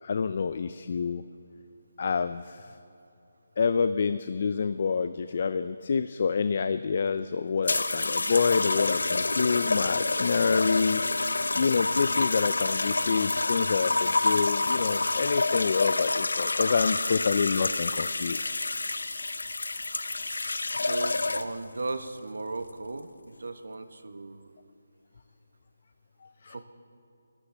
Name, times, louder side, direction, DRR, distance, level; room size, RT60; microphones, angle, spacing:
voice 1, 0.0-1.2 2.0-2.7 3.6-11.0 11.5-18.5 26.4-26.6, left 5 dB, 45° left, 12 dB, 0.4 m, -27 dB
sound 1, 7.7-21.7 22.6-22.9, left 3 dB, 85° left, 0.6 m, -28 dB
voice 2, 20.7-24.5 26.5-26.6, right 3 dB, 80° right, 9 dB, 1.0 m, -37 dB
26.5 x 14.5 x 3.4 m, 2.7 s
hypercardioid pair, 170°, 0 cm